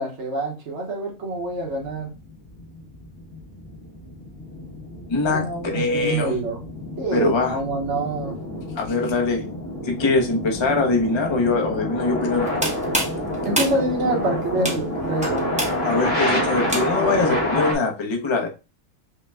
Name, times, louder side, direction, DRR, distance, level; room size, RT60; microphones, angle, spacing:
voice 1, 0.0-2.1 5.3-6.6 7.0-8.3 13.4-15.5, right 2 dB, 65° right, -1 dB, 1.4 m, -26 dB
sound 1, 1.6-17.8, left 1 dB, 75° left, 1.8 m, -28 dB
voice 2, 5.1-6.3 7.1-7.6 8.8-9.5 9.8-12.5 15.8-18.5, left 3 dB, 25° left, 2 dB, 0.7 m, -22 dB
sound 2, 12.3-17.2, right 1 dB, 5° right, 0.7 m, -29 dB
5.1 x 2.2 x 3.3 m, 0.29 s
omnidirectional pair, 1.3 m